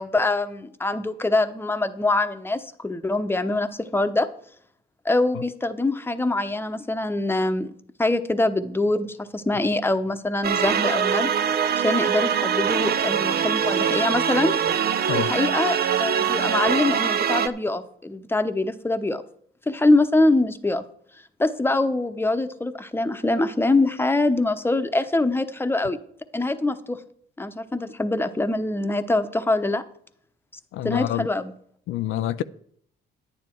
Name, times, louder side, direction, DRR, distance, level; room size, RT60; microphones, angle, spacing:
voice 1, 0.0-4.3 5.0-7.7 8.0-11.3 11.8-14.5 15.1-19.2 19.7-20.8 21.4-26.0 26.3-27.0 27.4-29.8 30.8-31.5, left 2 dB, 10° left, 0.9 m, -24 dB
sound 1, 10.4-17.5, right 8 dB, 50° right, 0.7 m, -23 dB
voice 2, 30.7-31.3 31.9-32.4, left 13 dB, 85° left, 0.5 m, -26 dB
10.5 x 9.5 x 4.5 m
cardioid pair, 90°, 20 cm